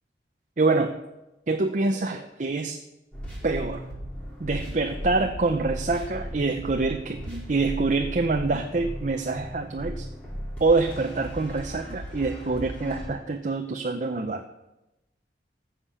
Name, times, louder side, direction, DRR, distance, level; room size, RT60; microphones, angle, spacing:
voice 1, 0.6-1.0 1.5-2.8 3.4-3.8 4.4-10.1 10.6-14.4, right 3 dB, 45° right, 5 dB, 0.7 m, -26 dB
sound 1, 3.1-13.1, equal, 5° left, 4.8 m, -36 dB
14.5 x 7.4 x 6.9 m, 0.97 s
head